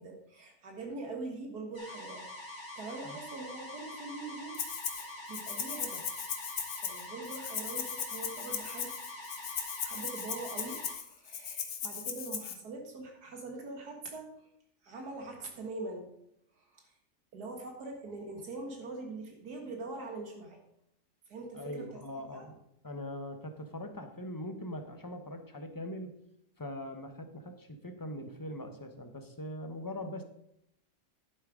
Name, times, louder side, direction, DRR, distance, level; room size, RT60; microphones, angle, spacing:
voice 1, 0.0-4.6 4.9-6.2 6.5-8.9 9.3-14.3 14.8-16.1 16.5-16.9 17.3-20.6 21.3-22.0 22.3-22.5, right 3 dB, 80° right, 2 dB, 2.2 m, -43 dB
sound 1, 1.7-11.0, left 1 dB, 45° left, 2.8 m, -45 dB
Rattle (instrument), 4.5-5.0 5.3-12.5, left 7 dB, 70° left, 1.6 m, -38 dB
voice 2, 21.5-22.6 22.8-26.1 26.6-30.2, left 1 dB, 15° left, 6 dB, 0.9 m, -41 dB
10.5 x 7.7 x 4.9 m, 0.78 s
omnidirectional pair, 1.7 m